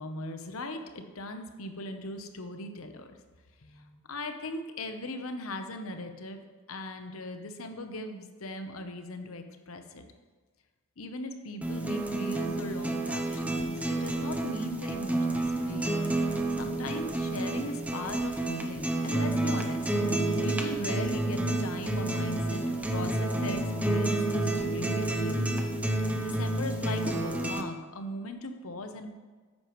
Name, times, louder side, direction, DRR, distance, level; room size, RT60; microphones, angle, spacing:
voice 1, 0.0-3.2 3.6-10.0 11.0-15.9 16.2-19.9 20.4-25.5 26.2-29.1, left 2 dB, 75° left, 6 dB, 0.9 m, -39 dB
sound 1, 11.6-27.6, right 2 dB, 5° right, 0.6 m, -30 dB
9.7 x 8.4 x 3.1 m, 1.4 s
head